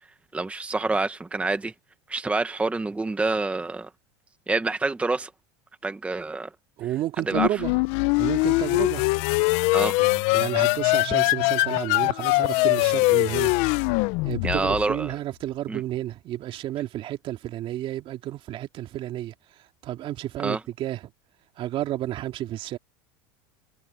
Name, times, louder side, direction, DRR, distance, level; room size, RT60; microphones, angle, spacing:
voice 1, 0.3-1.7 2.1-3.9 4.5-5.3 5.8-6.5 7.3-7.6 9.7-10.0 14.4-15.2 15.7-15.8 20.4-20.6, right 3 dB, 10° right, 1.1 m, -27 dB
voice 2, 6.8-7.7 8.1-9.0 10.0-13.5 14.2-19.3 19.8-21.0 21.6-22.8, right 13 dB, 45° right, 2.4 m, -31 dB
sound 1, 7.3-15.0, left 25 dB, 60° left, 0.6 m, -22 dB
supercardioid pair, 110°, 12 cm